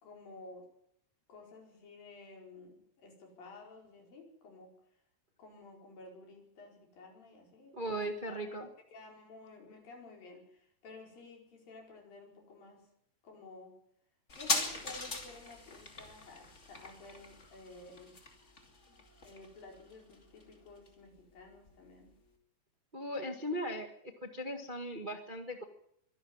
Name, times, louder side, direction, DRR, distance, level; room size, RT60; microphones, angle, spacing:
voice 1, 0.0-0.7 1.3-4.7 5.4-8.0 8.3-8.6 8.9-12.9 13.2-13.7 14.4-18.2 18.9-19.0 19.2-22.1, left 3 dB, 65° left, 1 dB, 6.4 m, -53 dB
voice 2, 7.7-8.7 22.9-23.9 24.2-25.6, equal, 80° right, 5 dB, 0.4 m, -38 dB
sound 1, 14.3-21.4 21.7-21.8, left 3 dB, 20° left, 2.3 m, -40 dB
23.5 x 11.5 x 9.6 m, 0.72 s
omnidirectional pair, 4.3 m